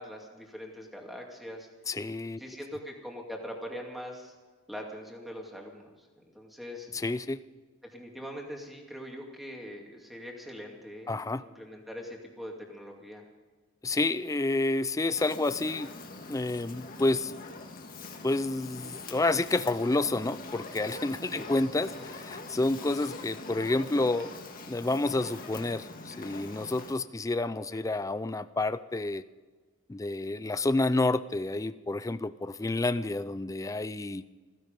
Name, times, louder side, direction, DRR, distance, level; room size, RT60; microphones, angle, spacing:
voice 1, 0.0-1.7 2.4-4.3 4.7-6.9 7.9-13.2 21.3-21.5 22.0-22.1 27.7-27.8, equal, ahead, 0 dB, 2.3 m, -42 dB
voice 2, 1.9-2.4 6.9-7.4 11.1-11.4 13.8-15.9 16.3-17.3 18.2-24.3 24.6-29.2 29.9-34.2, left 2 dB, 15° left, 14 dB, 0.4 m, -29 dB
Fire, 15.2-26.9, left 3 dB, 40° left, 1.7 m, -43 dB
16.0 x 15.5 x 5.3 m, 1.4 s
head